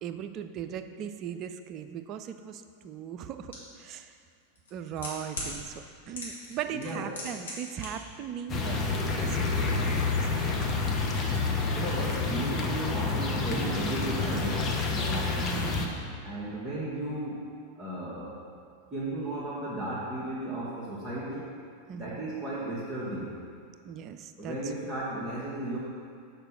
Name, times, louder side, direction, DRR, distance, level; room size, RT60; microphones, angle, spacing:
voice 1, 0.0-4.2 4.7-10.9 14.9-16.0 21.9-22.2 23.8-24.6, right 8 dB, 35° right, 9 dB, 0.4 m, -39 dB
sound 1, 3.5-3.6 4.5-5.5 6.1-6.5 6.8-7.9 8.1-8.2, left 2 dB, 70° left, 1.8 m, -37 dB
voice 2, 6.7-7.1 11.7-14.8 16.2-17.5 17.7-18.4 18.9-21.5 21.9-23.3 24.4-25.8, right 1 dB, 15° right, -9 dB, 1.2 m, -34 dB
sound 2, 8.5-15.9, left 4 dB, 25° left, 0.9 m, -28 dB
6.7 x 4.6 x 5.8 m, 2.3 s
figure-of-eight pair, 90°, 0 cm